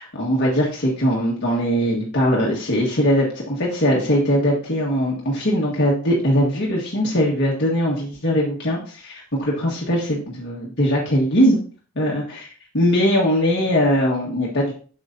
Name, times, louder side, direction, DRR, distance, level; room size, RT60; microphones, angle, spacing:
voice 1, 0.0-11.6 11.9-12.5 12.7-14.7, equal, 50° left, -3 dB, 1.6 m, -20 dB
8.1 x 6.7 x 2.7 m, 0.40 s
head